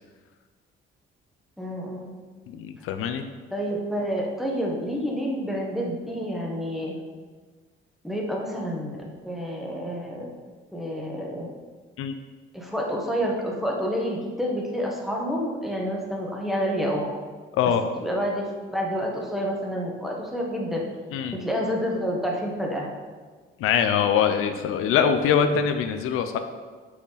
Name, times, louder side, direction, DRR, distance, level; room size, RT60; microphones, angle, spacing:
voice 1, 1.6-2.1 3.5-7.0 8.0-10.3 10.7-11.5 12.5-17.1 18.0-18.4 18.7-20.8 21.3-22.9, equal, ahead, -2 dB, 1.3 m, -28 dB
voice 2, 2.5-3.2 12.0-12.2 17.5-17.8 21.1-21.4 23.6-26.4, left 7 dB, 90° left, 8 dB, 0.6 m, -23 dB
6.1 x 6.0 x 4.1 m, 1.4 s
cardioid pair, 115°, 21 cm